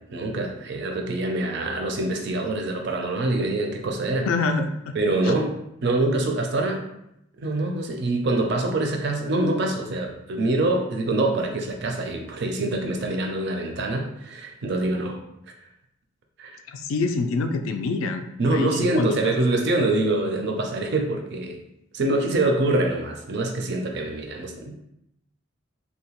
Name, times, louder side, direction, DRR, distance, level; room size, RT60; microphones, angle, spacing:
voice 1, 0.1-4.3 4.9-5.6 5.8-6.9 7.4-15.2 16.4-16.6 18.4-21.6 21.9-24.8, right 2 dB, 55° right, 3 dB, 0.4 m, -25 dB
voice 2, 4.3-4.9 5.2-5.3 16.7-19.2, left 3 dB, 80° left, 7 dB, 0.3 m, -26 dB
2.7 x 2.2 x 2.9 m, 0.82 s
head